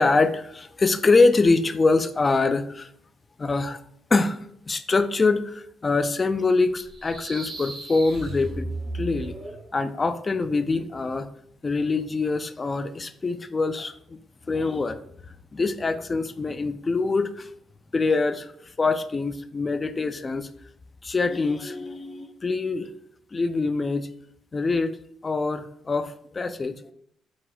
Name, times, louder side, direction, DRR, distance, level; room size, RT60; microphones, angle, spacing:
voice 1, 0.0-2.9 3.4-3.8 4.1-4.4 4.7-8.7 8.9-9.4 9.7-11.3 11.6-14.2 14.5-15.0 15.5-17.5 17.9-18.5 18.8-20.5 21.0-22.9 23.3-24.1 24.5-24.9 25.2-26.9, left 3 dB, 30° left, 11 dB, 0.3 m, -24 dB
sound 1, 6.8-9.7, right 2 dB, 55° right, 0.9 m, -35 dB
4.5 x 2.1 x 3.8 m, 0.69 s
cardioid pair, 90°, 0 cm